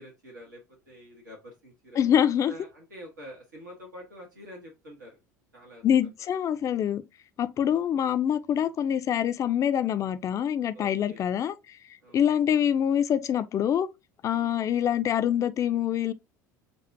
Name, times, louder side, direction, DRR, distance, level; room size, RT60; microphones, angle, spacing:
voice 1, 0.0-2.0 2.5-5.2 5.5-6.3 10.7-11.2 12.0-12.4 14.3-14.6, equal, 80° right, 1.3 m, -47 dB
voice 2, 2.0-2.5 5.8-7.0 7.4-11.5 12.1-13.9 14.2-16.1, left 9 dB, 35° left, 0.5 m, -25 dB
6.9 x 2.4 x 2.7 m
figure-of-eight pair, 70°, 10 cm